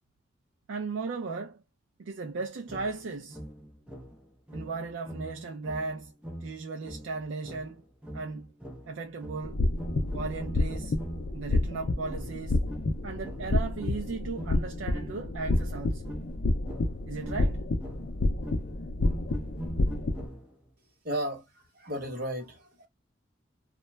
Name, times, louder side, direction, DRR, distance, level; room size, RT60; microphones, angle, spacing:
voice 1, 0.7-1.6 2.0-3.4 4.5-6.1 6.4-7.8 8.1-8.5 8.9-9.6 10.1-11.0 11.3-12.6 13.0-16.1 17.1-17.6, right 4 dB, 80° right, 0.4 m, -36 dB
sound 1, 2.7-11.4 12.1-20.7, equal, 5° right, 0.5 m, -43 dB
sound 2, 9.4-20.3, left 2 dB, 55° left, 0.4 m, -29 dB
voice 2, 21.0-22.9, right 1 dB, 50° right, 1.0 m, -34 dB
2.2 x 2.0 x 3.1 m
head